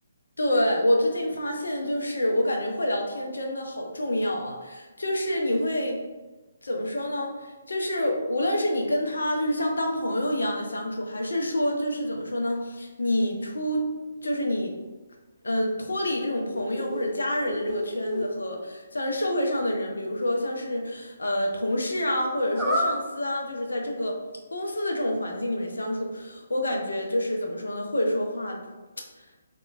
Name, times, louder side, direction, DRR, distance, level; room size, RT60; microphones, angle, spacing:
voice 1, 0.4-6.0 6.6-13.9 14.2-14.7 15.4-24.2 24.5-28.6, left 1 dB, 70° left, 1 dB, 0.5 m, -27 dB
sound 1, 16.2-17.1 17.5-18.3 22.5-23.0, equal, 5° right, 0.4 m, -29 dB
3.1 x 2.1 x 2.4 m, 1.2 s
figure-of-eight pair, 140°, 0 cm